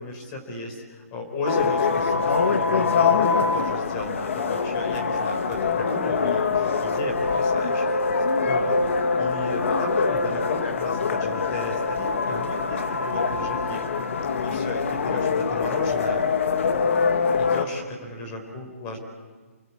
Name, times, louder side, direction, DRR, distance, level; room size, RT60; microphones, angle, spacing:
voice 1, 0.0-8.8 9.2-13.8 14.4-16.3 17.0-19.0, left 2 dB, 15° left, 3 dB, 4.2 m, -34 dB
sound 1, 1.5-17.6, left 5 dB, 55° left, 1.8 m, -24 dB
30.0 x 21.0 x 8.6 m, 1.4 s
hypercardioid pair, 180°, 8 cm